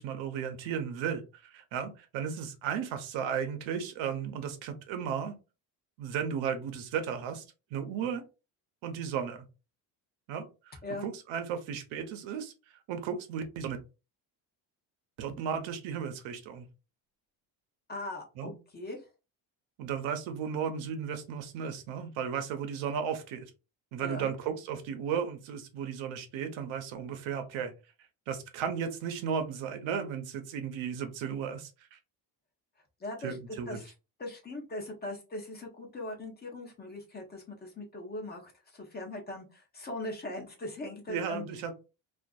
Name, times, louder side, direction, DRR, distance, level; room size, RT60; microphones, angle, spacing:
voice 1, 0.0-5.3 6.0-7.4 7.7-8.2 8.8-9.5 10.3-12.5 12.9-13.8 15.2-16.7 18.4-18.5 19.8-23.4 23.9-27.7 28.3-32.0 33.2-33.8 41.1-41.7, right 7 dB, 85° right, 7 dB, 0.8 m, -35 dB
voice 2, 17.9-19.0 24.0-24.3 33.0-33.4 33.7-33.9 34.2-41.4, left 2 dB, 20° left, 1 dB, 0.6 m, -40 dB
2.6 x 2.5 x 2.3 m, 0.29 s
cardioid pair, 160°, 45 cm